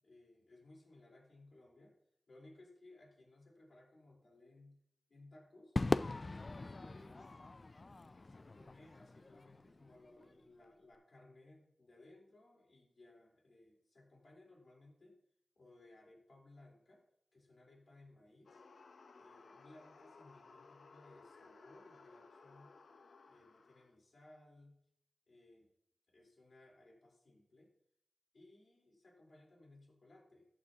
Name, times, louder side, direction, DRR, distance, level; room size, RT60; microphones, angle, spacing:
voice 1, 0.0-1.9 2.3-4.8 5.1-5.7 6.3-7.3 8.2-15.2 15.6-17.0 17.3-18.6 19.1-22.7 23.3-24.8 25.3-25.7 26.1-27.7 28.3-30.5, left 2 dB, 65° left, -2 dB, 3.9 m, -61 dB
Crowd / Fireworks, 5.8-10.2, left 3 dB, 40° left, 0.3 m, -40 dB
sound 1, 18.5-24.0, left 4 dB, 90° left, 0.7 m, -60 dB
14.0 x 9.0 x 2.9 m, 0.74 s
wide cardioid pair, 70°, 0 cm